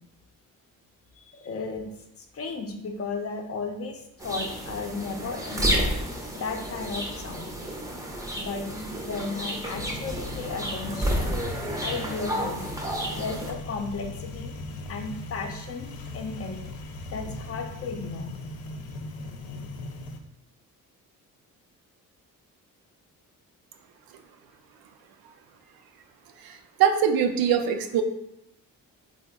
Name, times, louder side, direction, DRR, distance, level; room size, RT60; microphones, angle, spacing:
voice 1, 1.2-1.9 2.3-6.0 6.3-7.5 8.4-11.3 11.8-12.6 13.1-14.5 14.9-16.6 17.1-18.3, left 4 dB, 40° left, 3 dB, 0.6 m, -34 dB
sound 1, 4.2-13.5, right 1 dB, 10° right, 0.5 m, -31 dB
sound 2, 9.7-20.2, left 2 dB, 85° left, 0.5 m, -39 dB
voice 2, 26.4-28.0, right 8 dB, 85° right, 6 dB, 0.5 m, -23 dB
3.7 x 2.1 x 3.5 m, 0.83 s
cardioid pair, 100°, 35 cm